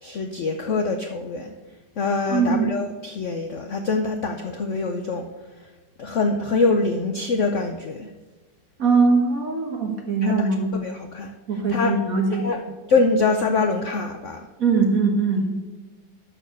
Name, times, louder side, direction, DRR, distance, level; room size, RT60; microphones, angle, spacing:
voice 1, 0.0-1.6 2.0-5.3 6.0-8.1 10.2-10.5 10.8-11.3 11.7-12.0 12.3-12.6 12.9-14.4, left 3 dB, 60° left, 5 dB, 0.8 m, -24 dB
voice 2, 2.3-2.8 8.8-10.7 11.5-12.5 14.6-15.5, right 4 dB, 50° right, 2 dB, 2.0 m, -21 dB
12.5 x 4.3 x 6.6 m, 1.3 s
omnidirectional pair, 2.1 m